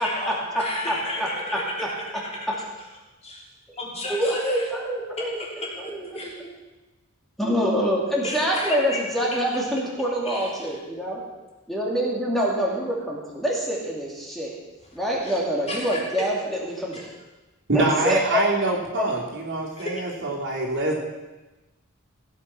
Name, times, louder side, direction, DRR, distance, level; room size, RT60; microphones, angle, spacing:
voice 1, 0.0-1.9 3.2-3.5 3.8-4.7 5.2-6.4 8.2-9.3 10.2-10.8 15.2-15.4 15.7-16.3 16.9-17.0 19.8-20.1, left 1 dB, 30° left, -3 dB, 3.5 m, -33 dB
voice 2, 0.5-1.3 4.1-5.4 5.8-6.5 7.4-11.2 11.7-14.5 14.9-17.0 17.7-18.4 18.9-19.0, equal, ahead, -4 dB, 2.5 m, -26 dB
voice 3, 17.7-21.0, right 2 dB, 60° right, -2 dB, 3.1 m, -25 dB
16.0 x 9.0 x 6.0 m, 1.1 s
head